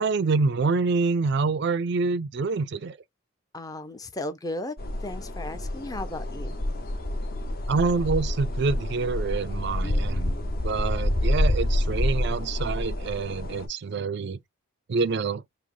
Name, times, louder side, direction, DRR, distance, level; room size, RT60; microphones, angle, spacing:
voice 1, 0.0-3.0 7.7-10.3 10.6-14.4 14.9-15.4, right 4 dB, 50° right, 0.4 m, -26 dB
voice 2, 3.5-6.6 9.8-10.5, left 1 dB, 15° left, 0.5 m, -36 dB
sound 1, 4.8-13.7, left 1 dB, 45° left, 0.8 m, -28 dB
5.0 x 2.1 x 3.7 m
head